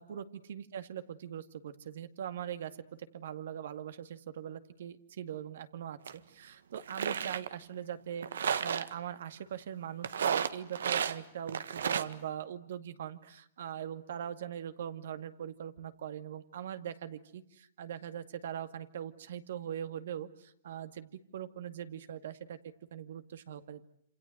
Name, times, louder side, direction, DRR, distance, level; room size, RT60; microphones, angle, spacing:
voice 1, 0.0-2.7 3.1-22.6 22.9-23.8, right 9 dB, 65° right, 11 dB, 2.2 m, -41 dB
sound 1, 6.1-6.2 6.7-7.5 8.2-8.9 10.0-11.2 11.5-12.1, right 7 dB, 90° right, 1.7 m, -32 dB
27.5 x 27.5 x 7.8 m, 0.69 s
hypercardioid pair, 160°, 0 cm